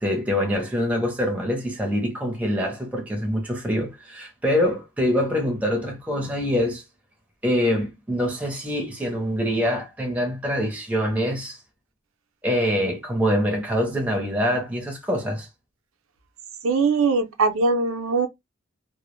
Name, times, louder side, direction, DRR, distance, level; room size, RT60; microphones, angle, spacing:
voice 1, 0.0-6.8 7.4-11.6 12.4-15.5, equal, 5° right, 0.6 m, -25 dB
voice 2, 16.6-18.3, right 4 dB, 85° right, 0.5 m, -21 dB
2.1 x 2.0 x 3.0 m
head